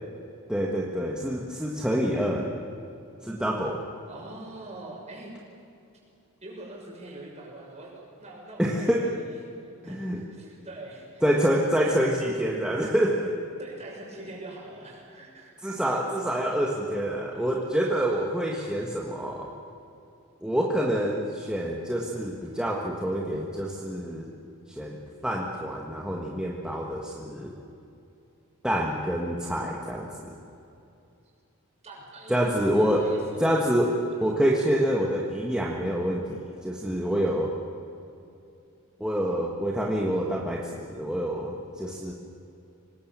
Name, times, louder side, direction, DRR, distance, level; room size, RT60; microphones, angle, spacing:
voice 1, 0.5-2.5 3.2-3.8 8.6-9.1 9.9-10.2 11.2-13.3 15.6-19.5 20.4-24.3 24.7-27.5 28.6-30.4 32.3-33.1 33.4-33.9 34.2-37.5 39.0-42.1, equal, 5° right, -2 dB, 1.6 m, -27 dB
voice 2, 4.1-5.3 6.4-9.3 9.8-11.2 13.6-15.8 31.8-32.3 32.8-33.6 34.1-34.5, right 2 dB, 30° right, -2 dB, 6.4 m, -44 dB
25.0 x 19.5 x 7.5 m, 2.7 s
head